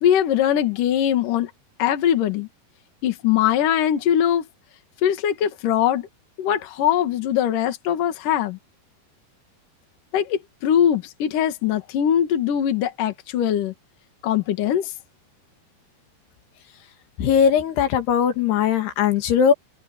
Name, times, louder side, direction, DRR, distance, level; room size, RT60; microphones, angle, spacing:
voice 1, 0.0-1.5 1.8-2.5 3.0-4.4 5.0-6.1 6.4-8.6 10.1-13.7 14.2-14.9, left 10 dB, 60° left, 3.2 m, -21 dB
voice 2, 17.2-19.5, left 8 dB, 80° left, 4.0 m, -19 dB
omnidirectional pair, 4.6 m